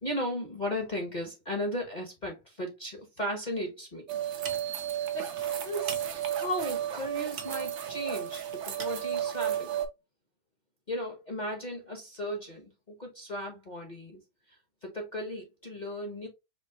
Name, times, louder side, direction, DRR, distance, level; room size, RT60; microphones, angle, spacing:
voice 1, 0.0-4.2 5.1-5.3 5.6-9.8 10.9-14.2 14.8-16.3, equal, 35° left, 0.8 m, -36 dB
sound 1, 4.1-9.9, right 10 dB, 85° right, 0.6 m, -33 dB
5.1 x 2.7 x 2.8 m
omnidirectional pair, 2.2 m